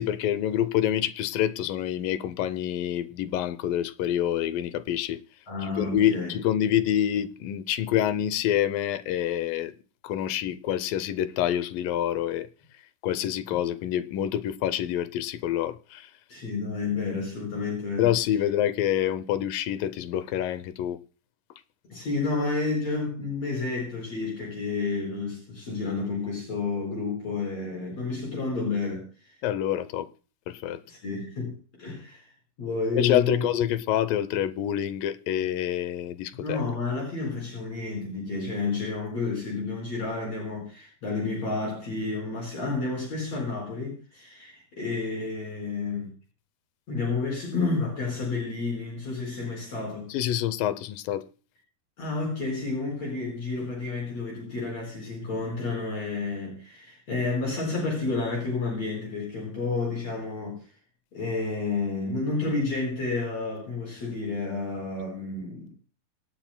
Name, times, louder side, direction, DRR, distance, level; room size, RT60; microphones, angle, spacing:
voice 1, 0.0-5.2 5.6-9.7 10.0-12.5 13.0-16.1 18.0-21.0 29.4-30.1 30.5-30.8 33.0-36.6 50.1-51.3, left 11 dB, 85° left, 2.4 m, -27 dB
voice 2, 5.5-6.3 16.3-18.1 21.9-29.3 30.9-32.3 32.6-33.5 36.3-46.1 46.9-50.1 52.0-60.7 61.1-65.7, left 3 dB, 50° left, 5.8 m, -30 dB
26.0 x 8.8 x 2.2 m
omnidirectional pair, 3.9 m